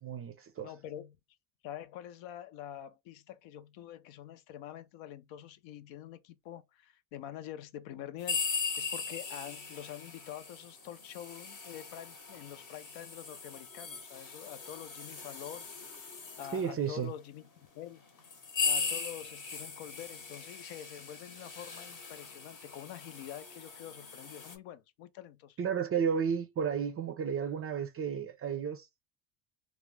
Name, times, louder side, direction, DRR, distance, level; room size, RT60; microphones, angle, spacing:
voice 1, 0.0-0.7 16.5-17.1 25.6-29.1, right 7 dB, 30° right, 0.4 m, -33 dB
voice 2, 0.6-1.2 1.6-16.0 16.4-17.4 17.7-18.0 18.6-25.6, left 11 dB, 65° left, 0.6 m, -46 dB
sound 1, 8.2-16.7 17.4-17.5 18.2-24.6, left 5 dB, 40° left, 0.9 m, -39 dB
2.4 x 2.1 x 3.2 m
supercardioid pair, 80°, 49 cm